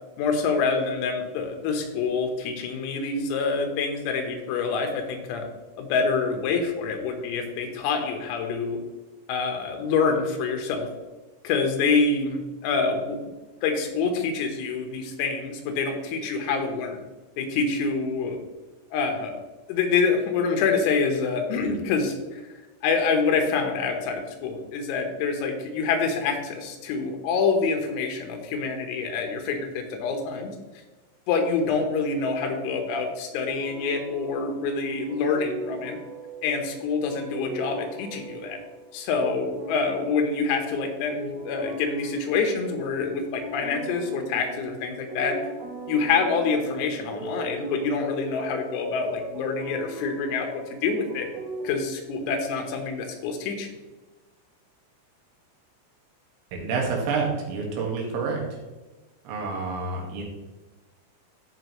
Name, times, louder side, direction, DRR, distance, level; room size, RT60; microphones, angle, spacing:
voice 1, 0.2-5.5 5.8-8.8 9.3-10.9 11.4-13.3 13.6-17.0 17.4-18.4 18.9-19.4 19.7-22.4 22.8-30.5 31.3-36.0 36.4-38.6 38.9-45.4 45.9-50.5 50.8-51.3 51.7-53.7, left 4 dB, 90° left, 4 dB, 4.0 m, -26 dB
sound 1, 33.5-51.7, right 1 dB, 45° right, 2.5 m, -39 dB
voice 2, 56.5-58.4 59.3-60.2, right 4 dB, 80° right, -1 dB, 4.4 m, -28 dB
14.5 x 5.7 x 3.1 m, 1.2 s
omnidirectional pair, 5.9 m